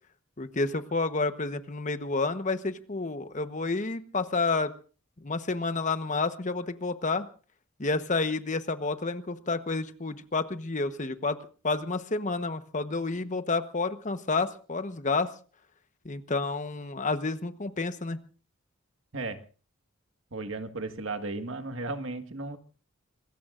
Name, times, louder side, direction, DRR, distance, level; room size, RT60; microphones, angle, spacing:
voice 1, 0.4-4.7 5.2-7.3 7.8-11.4 11.6-15.3 16.0-18.2, left 3 dB, 40° left, 10 dB, 1.1 m, -30 dB
voice 2, 20.3-22.6, right 3 dB, 70° right, 7 dB, 1.7 m, -35 dB
26.0 x 21.5 x 2.5 m, 0.38 s
head